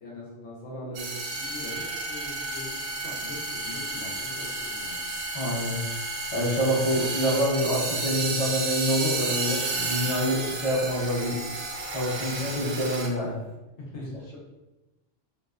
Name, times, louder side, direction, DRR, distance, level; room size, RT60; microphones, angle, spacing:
voice 1, 0.0-5.2 13.8-14.4, left 1 dB, 70° left, -4 dB, 0.9 m, -41 dB
sound 1, 0.9-13.1, right 3 dB, 90° right, 1.0 m, -32 dB
voice 2, 5.3-5.8 6.3-11.4 11.9-13.3, equal, 25° left, -7 dB, 0.7 m, -26 dB
2.7 x 2.1 x 2.3 m, 1.0 s
omnidirectional pair, 1.3 m